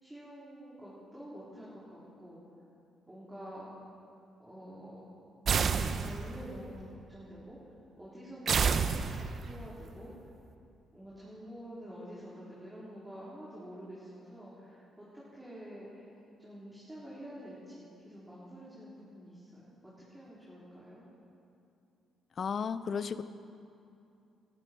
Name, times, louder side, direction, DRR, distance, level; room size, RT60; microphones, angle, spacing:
voice 1, 0.0-2.4 3.1-3.7 4.4-5.1 5.8-7.6 8.0-10.1 10.9-16.1 16.4-21.0, equal, 10° right, -9 dB, 4.0 m, -48 dB
sound 1, 5.5-6.5 8.5-9.5, right 6 dB, 55° right, 0.7 m, -29 dB
voice 2, 22.4-23.2, left 6 dB, 50° left, 14 dB, 0.6 m, -33 dB
19.0 x 13.5 x 4.6 m, 2.6 s
cardioid pair, 90°, 0 cm